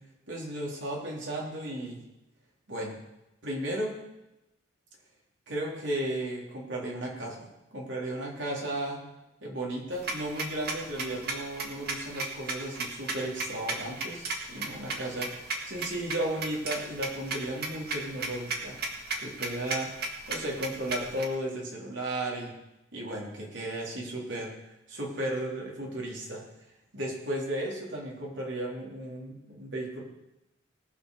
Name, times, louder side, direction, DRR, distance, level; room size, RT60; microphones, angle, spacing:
voice 1, 0.3-2.0 2.7-3.0 3.4-4.0 5.5-9.0 9.4-18.8 19.2-19.9 20.3-22.5 22.9-24.5 24.9-26.4 26.9-30.0, right 1 dB, 70° right, -2 dB, 3.5 m, -34 dB
sound 1, 9.9-21.2, right 3 dB, 55° right, 1.8 m, -34 dB
19.0 x 6.4 x 6.5 m, 0.94 s
head